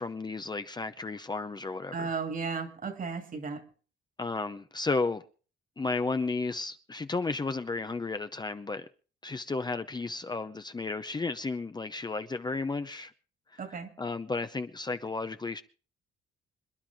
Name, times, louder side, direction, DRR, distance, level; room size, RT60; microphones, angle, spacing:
voice 1, 0.0-2.1 4.2-5.2 5.8-8.9 9.2-13.1 13.5-15.6, left 3 dB, 20° left, 0.7 m, -33 dB
voice 2, 1.9-3.6 13.6-13.9, right 5 dB, 45° right, 2.4 m, -34 dB
26.5 x 10.5 x 3.6 m
cardioid pair, 90°, 20 cm